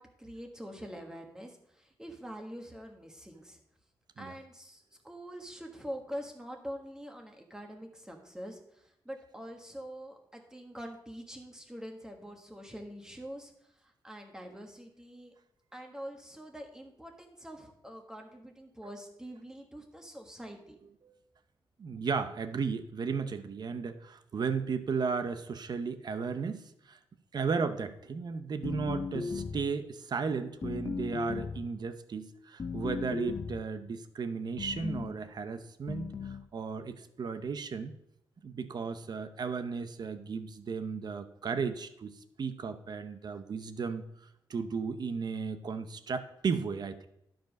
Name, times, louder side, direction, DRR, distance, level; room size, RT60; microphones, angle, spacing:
voice 1, 0.0-3.6 4.2-13.5 13.8-15.3 15.7-20.8, equal, 5° right, 2 dB, 1.5 m, -45 dB
voice 2, 21.8-27.0 27.3-37.9 38.4-44.0 44.5-47.0, right 5 dB, 50° right, 10 dB, 0.7 m, -35 dB
sound 1, 28.6-29.8 30.6-31.7 32.6-33.7 34.6-35.1 35.9-36.5, left 5 dB, 35° left, 0.5 m, -36 dB
11.5 x 5.1 x 5.2 m, 0.76 s
wide cardioid pair, 125°, 9 cm